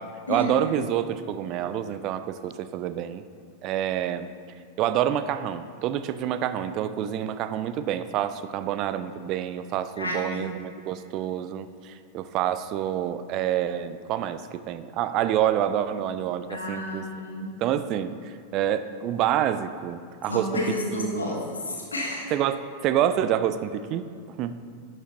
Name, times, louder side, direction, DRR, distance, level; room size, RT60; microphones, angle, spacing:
voice 1, 0.3-3.2 3.6-4.3 4.8-17.1 17.6-20.6 20.9-21.4 22.3-24.1 24.4-24.6, right 10 dB, 40° right, 11 dB, 0.4 m, -27 dB
voice 2, 10.0-10.5 16.5-17.5 20.3-22.3, left 1 dB, 75° left, -2 dB, 1.4 m, -31 dB
10.5 x 6.1 x 2.9 m, 2.3 s
figure-of-eight pair, 90°, 0 cm